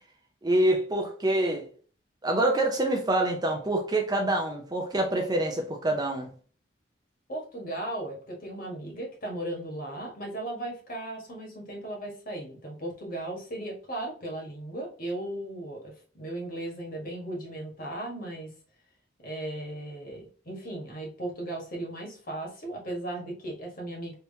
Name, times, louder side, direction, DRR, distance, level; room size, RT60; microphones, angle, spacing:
voice 1, 0.4-1.7 2.2-6.3, right 1 dB, 20° right, 0.5 m, -26 dB
voice 2, 7.3-18.5 19.2-24.1, right 1 dB, 45° left, 1.3 m, -36 dB
3.4 x 2.9 x 2.7 m
head